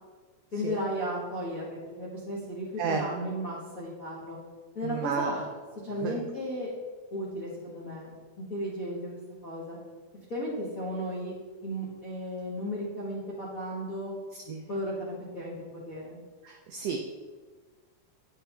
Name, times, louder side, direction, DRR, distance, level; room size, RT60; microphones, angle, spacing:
voice 1, 0.5-4.4 4.7-5.4 5.8-6.7 7.1-8.1 8.5-9.8 10.3-11.3 11.6-14.1 14.7-16.2, equal, 40° left, -8 dB, 1.2 m, -35 dB
voice 2, 4.8-5.4 6.0-6.2 14.5-14.7 16.4-17.0, right 6 dB, 85° right, 3 dB, 1.4 m, -31 dB
9.4 x 6.1 x 3.4 m, 1.4 s
omnidirectional pair, 3.6 m